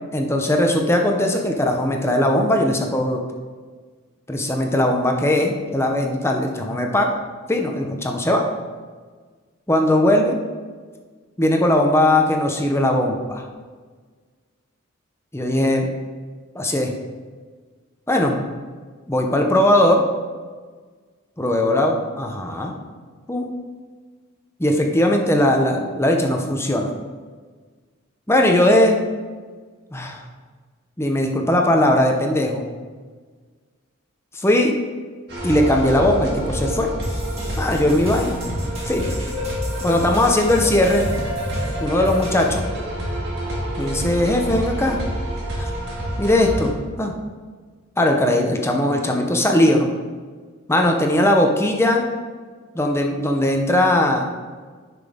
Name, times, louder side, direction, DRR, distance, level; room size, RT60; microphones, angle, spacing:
voice 1, 0.1-3.2 4.3-7.2 7.5-8.4 9.7-10.4 11.4-13.5 15.3-15.9 16.5-16.9 18.1-18.6 19.1-20.0 21.4-22.7 23.3-23.5 24.6-26.9 28.3-29.0 29.9-30.2 31.0-32.7 34.3-34.7 35.4-36.9 37.6-38.4 38.9-39.1 39.8-41.1 41.8-42.7 43.8-45.0 45.6-45.7 46.2-46.7 47.0-47.1 48.0-49.9 50.7-52.1 52.7-54.3, left 1 dB, 10° left, 2 dB, 0.8 m, -19 dB
sound 1, 35.3-46.7, equal, 50° right, 2.0 m, -27 dB
sound 2, 37.0-42.6, equal, 30° right, 2.2 m, -35 dB
10.0 x 6.0 x 3.7 m, 1.5 s
head